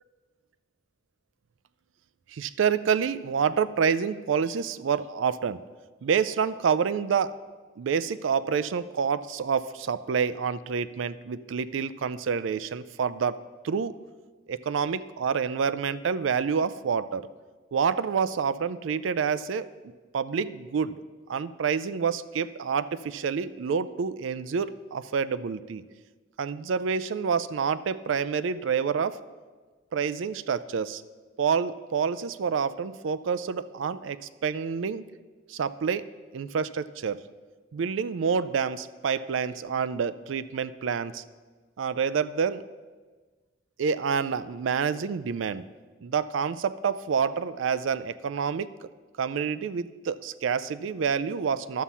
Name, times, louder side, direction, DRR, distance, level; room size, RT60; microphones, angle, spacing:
voice 1, 2.3-5.6 6.0-7.4 7.8-13.4 13.6-14.0 14.5-17.3 17.7-19.7 20.1-21.0 21.3-25.8 26.4-29.2 29.9-31.0 31.4-35.0 35.5-36.1 36.3-37.2 37.7-41.2 41.8-42.6 43.8-45.6 46.0-48.7 49.2-51.8, right 6 dB, 80° right, 14 dB, 0.4 m, -28 dB
11.5 x 7.3 x 5.6 m, 1.4 s
head